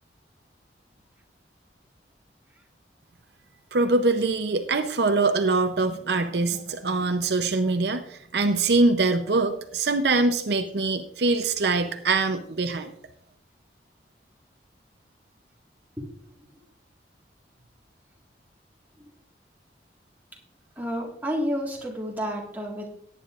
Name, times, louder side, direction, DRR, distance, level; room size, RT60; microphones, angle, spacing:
voice 1, 3.7-12.9, right 3 dB, 65° right, 7 dB, 0.7 m, -23 dB
voice 2, 20.8-22.9, equal, 10° right, -1 dB, 1.7 m, -30 dB
18.0 x 9.2 x 2.5 m, 0.68 s
head